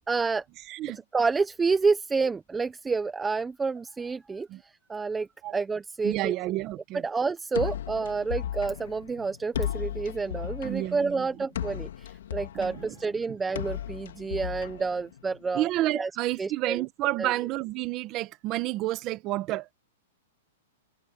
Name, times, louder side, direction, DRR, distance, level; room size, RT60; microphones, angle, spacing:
voice 1, 0.1-0.4 1.1-5.3 5.5-6.3 7.0-15.7 15.9-16.1 16.4-16.8 17.2-17.3, right 4 dB, 5° right, 0.6 m, -29 dB
voice 2, 0.7-1.0 4.5-4.6 5.4-5.5 6.0-7.0 10.6-11.3 12.5-12.9 13.3-13.4 15.5-19.7, right 16 dB, 20° right, 1.2 m, -30 dB
sound 1, 7.5-15.5, left 10 dB, 65° left, 3.1 m, -36 dB
supercardioid pair, 175°, 0 cm